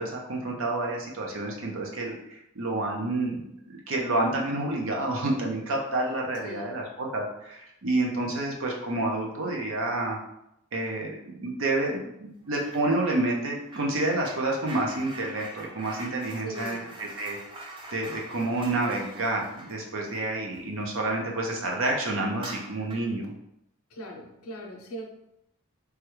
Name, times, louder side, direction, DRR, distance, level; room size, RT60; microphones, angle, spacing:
voice 1, 0.0-3.4 3.7-10.2 10.7-17.4 17.9-23.3, right 2 dB, 60° right, -1 dB, 0.7 m, -29 dB
voice 2, 6.4-6.7 16.4-17.0 23.9-25.1, right 1 dB, 75° left, 1 dB, 0.6 m, -40 dB
sound 1, 12.5-12.9 13.1-21.3 21.7-21.8 22.3-23.2, right 2 dB, 25° right, 0.4 m, -44 dB
3.4 x 2.3 x 3.0 m, 0.81 s
head